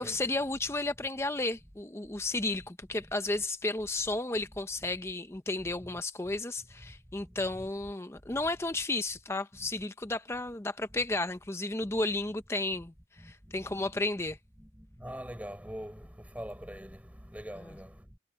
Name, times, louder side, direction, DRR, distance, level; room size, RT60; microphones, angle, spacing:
voice 1, 0.0-14.4, left 2 dB, 15° left, 0.6 m, -33 dB
voice 2, 7.2-7.7 8.3-8.4 9.5-9.7 10.9-11.0 13.2-14.0 14.6-18.2, equal, 10° right, 6.2 m, -44 dB
head